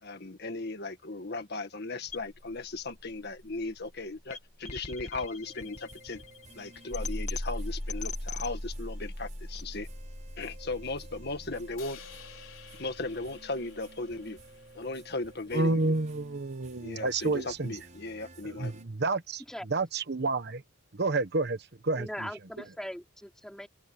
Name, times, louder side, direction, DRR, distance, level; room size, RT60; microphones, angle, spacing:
voice 1, 0.0-6.2 6.6-9.9 10.4-12.0 12.7-14.4 14.7-15.9 16.8-18.7, left 2 dB, 55° left, 1.9 m, -37 dB
sound 1, 2.1-14.1, left 2 dB, 35° left, 2.0 m, -40 dB
sound 2, 5.4-18.8, right 2 dB, 40° right, 6.0 m, -54 dB
Crash cymbal, 11.8-16.0, left 8 dB, 75° left, 5.2 m, -53 dB
voice 2, 15.5-17.8 18.4-20.6 21.0-21.6 21.8-22.5, right 3 dB, 55° right, 1.1 m, -30 dB
voice 3, 22.0-23.7, equal, 5° left, 3.6 m, -40 dB
open air
head